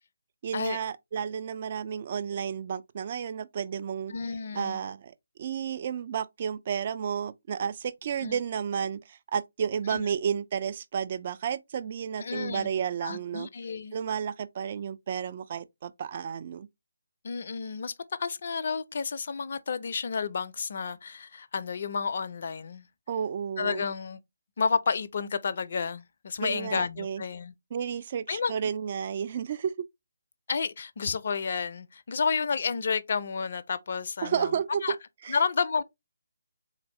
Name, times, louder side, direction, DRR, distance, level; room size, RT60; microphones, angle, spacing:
voice 1, 0.4-4.1 4.5-5.1 5.4-13.5 13.9-16.7 23.1-23.8 26.4-27.2 27.7-29.7 34.2-34.8 35.2-35.4, right 7 dB, 40° right, 0.3 m, -32 dB
voice 2, 4.1-4.8 8.2-8.4 9.9-10.0 12.2-12.7 13.0-14.0 17.2-17.9 18.2-22.8 23.6-24.2 24.6-27.5 28.3-28.5 30.5-34.5 34.8-35.0 35.3-35.8, left 5 dB, 50° left, 0.4 m, -31 dB
3.9 x 2.5 x 3.0 m
figure-of-eight pair, 150°, 0 cm